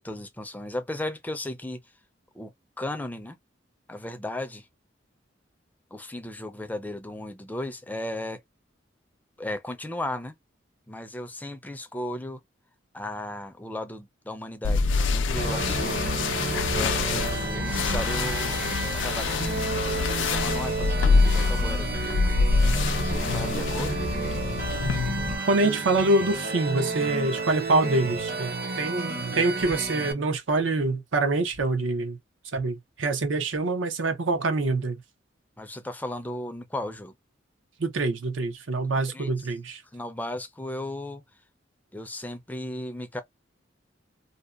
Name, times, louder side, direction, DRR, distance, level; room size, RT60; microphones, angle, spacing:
voice 1, 0.0-1.9 2.3-2.5 2.8-3.4 3.9-4.7 5.9-8.4 9.4-10.3 10.9-12.4 12.9-16.0 16.5-22.4 23.0-24.0 35.6-37.1 39.1-39.5 39.9-41.2 41.9-43.2, left 1 dB, 10° left, 0.4 m, -36 dB
sound 1, 14.6-25.3, left 4 dB, 75° left, 0.4 m, -26 dB
sound 2, 15.4-30.1, right 3 dB, 50° right, 0.7 m, -31 dB
voice 2, 25.5-28.5 28.8-32.2 32.5-35.0 37.8-39.8, right 2 dB, 90° right, 0.6 m, -25 dB
2.6 x 2.1 x 2.3 m
head